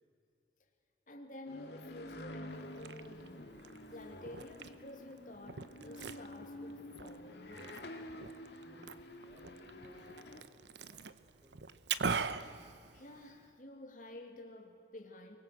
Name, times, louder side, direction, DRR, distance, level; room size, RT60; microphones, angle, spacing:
voice 1, 1.1-3.6 3.9-7.8 12.9-15.4, left 1 dB, 50° left, 3 dB, 2.7 m, -51 dB
sound 1, 1.5-10.4, left 1 dB, 75° left, 2.1 m, -49 dB
Liquid, 2.5-13.5, right 5 dB, 85° right, 0.9 m, -43 dB
voice 2, 8.5-11.6, left 1 dB, 30° right, -6 dB, 6.9 m, -61 dB
24.0 x 21.0 x 7.7 m, 2.5 s
head